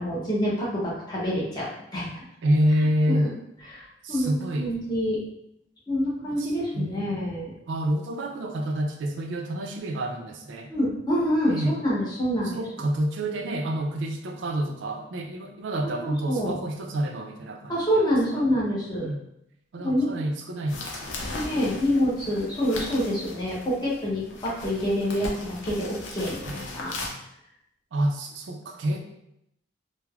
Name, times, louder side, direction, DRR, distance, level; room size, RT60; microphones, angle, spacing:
voice 1, 0.0-2.2 3.7-5.2 5.9-7.5 10.7-12.6 15.8-16.5 17.7-19.1 19.8-20.1 21.3-26.9, equal, 20° left, -6 dB, 0.7 m, -27 dB
voice 2, 2.4-3.3 4.0-4.7 6.4-7.2 7.7-10.7 11.5-11.8 12.4-18.4 19.0-19.2 19.7-21.3 26.5-27.2 27.9-29.0, right 1 dB, 80° right, 3 dB, 0.4 m, -28 dB
sound 1, 20.7-27.1, left 2 dB, 85° left, 0.5 m, -38 dB
3.1 x 2.1 x 2.3 m, 0.79 s
head